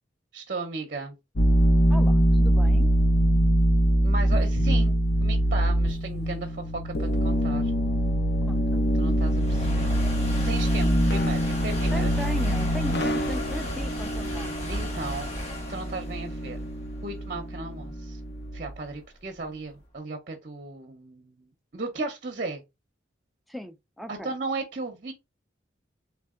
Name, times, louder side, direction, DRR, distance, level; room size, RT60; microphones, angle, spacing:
voice 1, 0.3-1.1 4.0-7.7 8.9-9.9 10.4-12.1 14.7-15.3 15.7-16.6 17.0-18.2 18.5-22.6 24.1-25.1, right 3 dB, 45° right, 0.6 m, -35 dB
sound 1, 1.4-18.8, equal, 60° left, 0.7 m, -24 dB
voice 2, 1.9-2.9 8.5-8.9 11.9-14.5 23.5-24.3, equal, ahead, 0.3 m, -37 dB
sound 2, 6.7-19.8, left 1 dB, 35° left, 1.2 m, -36 dB
3.5 x 3.3 x 3.6 m
head